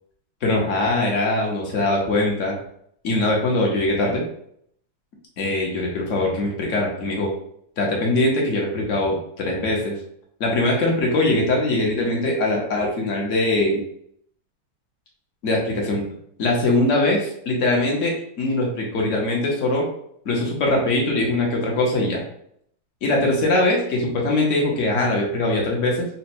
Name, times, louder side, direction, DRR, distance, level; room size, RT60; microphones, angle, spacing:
voice 1, 0.4-2.5 3.0-4.2 5.4-7.3 7.8-10.0 10.4-13.8 15.4-16.1 16.4-19.9 20.2-22.2 23.0-26.1, left 2 dB, 50° left, -1 dB, 1.0 m, -22 dB
4.1 x 2.2 x 4.3 m, 0.69 s
omnidirectional pair, 2.2 m